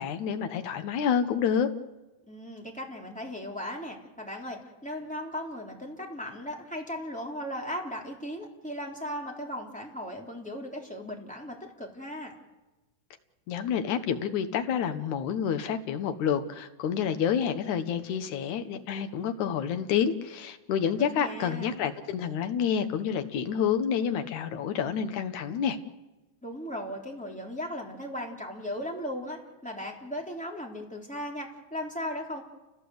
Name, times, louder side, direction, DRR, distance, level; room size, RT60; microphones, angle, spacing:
voice 1, 0.0-1.7 13.5-25.8, left 8 dB, 65° left, 8 dB, 2.2 m, -28 dB
voice 2, 2.3-12.3 21.0-21.8 26.4-32.4, equal, ahead, -1 dB, 2.9 m, -37 dB
29.5 x 17.5 x 7.9 m, 1.1 s
omnidirectional pair, 4.4 m